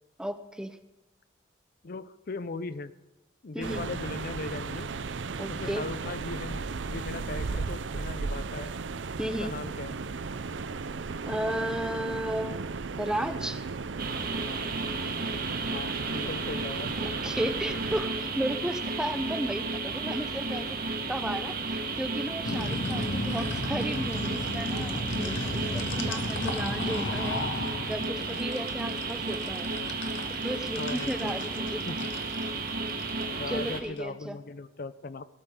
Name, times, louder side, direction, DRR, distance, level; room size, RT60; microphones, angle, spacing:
voice 1, 0.2-0.8 3.5-3.9 5.4-5.9 9.2-9.6 11.3-12.6 13.0-13.7 17.0-20.8 21.1-29.7 30.4-31.8 33.5-34.4, equal, 5° right, 10 dB, 0.6 m, -34 dB
voice 2, 1.8-2.9 3.4-4.9 5.5-8.7 9.3-9.9 15.6-17.0 28.3-28.4 30.7-31.4 31.9-32.1 33.4-35.2, left 3 dB, 50° left, 14 dB, 0.6 m, -38 dB
sound 1, 3.6-18.1, right 4 dB, 75° right, 0.6 m, -36 dB
sound 2, 14.0-33.8, right 3 dB, 55° right, 1.6 m, -33 dB
sound 3, 22.4-34.0, left 1 dB, 85° left, 1.6 m, -34 dB
19.0 x 13.0 x 3.8 m, 0.98 s
head